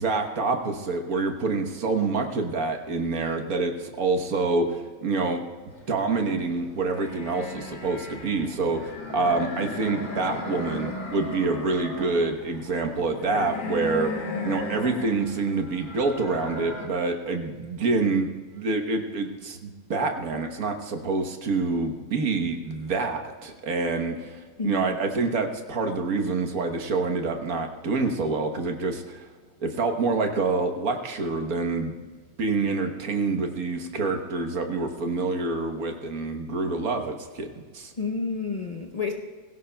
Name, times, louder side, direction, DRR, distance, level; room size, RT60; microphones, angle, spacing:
voice 1, 0.0-5.4 5.9-14.1 14.4-29.3 29.6-31.9 32.4-37.9, right 3 dB, 75° right, 4 dB, 1.6 m, -27 dB
sound 1, 5.7-16.9, left 2 dB, 80° left, 2.3 m, -36 dB
voice 2, 24.6-25.0 38.0-39.1, left 4 dB, 35° left, 0 dB, 0.7 m, -30 dB
20.5 x 17.0 x 2.3 m, 1.4 s
omnidirectional pair, 1.6 m